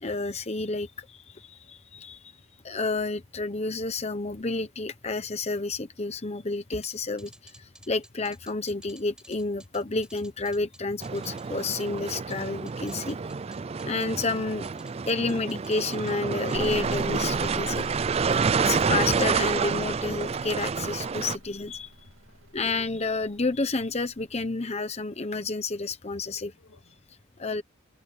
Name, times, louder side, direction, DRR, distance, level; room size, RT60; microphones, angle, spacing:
voice 1, 0.0-2.2 2.6-13.2 13.8-14.7 15.1-17.9 18.6-21.9 22.5-26.5 27.4-27.6, left 3 dB, 30° left, 1.0 m, -30 dB
sound 1, 6.8-12.4 12.7-14.3 14.6-16.2 16.5-17.5 17.8-18.3, right 1 dB, 5° right, 5.8 m, -52 dB
sound 2, 11.0-21.4, right 5 dB, 30° right, 0.4 m, -28 dB
sound 3, 16.5-24.1, right 1 dB, 65° right, 2.4 m, -43 dB
voice 2, 22.2-22.5 26.1-27.1, left 3 dB, 85° left, 3.0 m, -61 dB
head